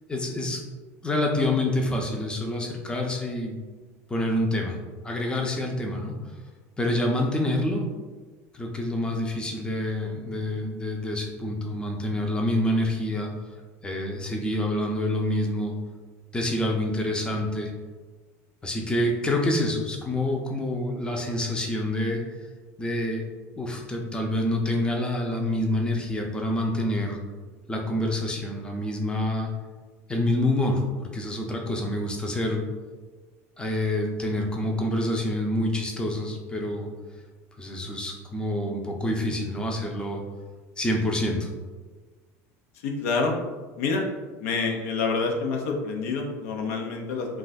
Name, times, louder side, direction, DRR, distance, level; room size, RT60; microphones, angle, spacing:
voice 1, 0.1-0.6 1.0-3.6 4.1-4.8 5.0-6.4 6.8-7.8 8.5-13.3 13.8-15.7 16.3-17.7 18.6-22.5 22.8-23.2 23.6-27.2 27.7-29.5 30.1-30.8 31.1-32.6 33.6-36.9 37.6-40.2 40.8-41.5, left 1 dB, 10° left, 1 dB, 0.5 m, -27 dB
voice 2, 42.7-43.4 43.8-44.0 44.4-47.3, left 4 dB, 80° left, 1 dB, 0.5 m, -27 dB
2.4 x 2.3 x 4.0 m, 1.3 s
supercardioid pair, 100°, 8 cm